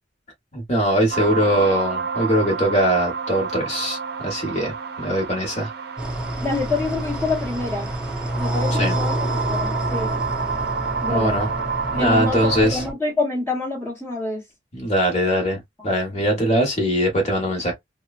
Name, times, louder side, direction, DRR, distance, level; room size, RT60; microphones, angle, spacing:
voice 1, 0.5-4.0 4.2-5.7 8.7-8.9 11.1-11.5 11.9-12.8 14.7-17.7, equal, 40° left, 1.1 m, -21 dB
sound 1, 1.1-12.6, right 5 dB, 60° right, 0.6 m, -29 dB
sound 2, 6.0-12.9, right 1 dB, 5° right, 0.5 m, -28 dB
voice 2, 6.4-7.9 8.4-10.1 11.0-11.4 11.9-14.4 15.8-15.9, left 3 dB, 10° left, 1.0 m, -26 dB
3.0 x 2.2 x 2.4 m
head